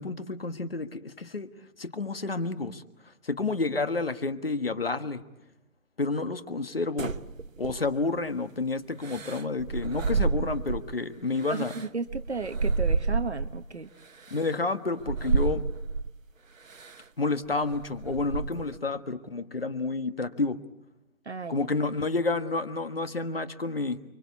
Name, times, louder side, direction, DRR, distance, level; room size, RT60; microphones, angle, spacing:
voice 1, 0.0-1.5 1.8-5.2 6.0-7.1 7.6-11.7 14.3-15.7 17.2-20.6 21.5-24.0, left 3 dB, 45° left, 11 dB, 1.4 m, -30 dB
sound 1, 7.0-8.2 9.0-10.9 11.4-13.6 14.3-14.4 15.0-16.1 16.7-17.0 17.4-18.8, right 4 dB, 70° right, 1.3 m, -30 dB
voice 2, 11.5-13.9 21.2-21.7, right 4 dB, 50° right, 8 dB, 1.1 m, -34 dB
30.0 x 23.5 x 8.3 m, 0.92 s
hypercardioid pair, 180°, 42 cm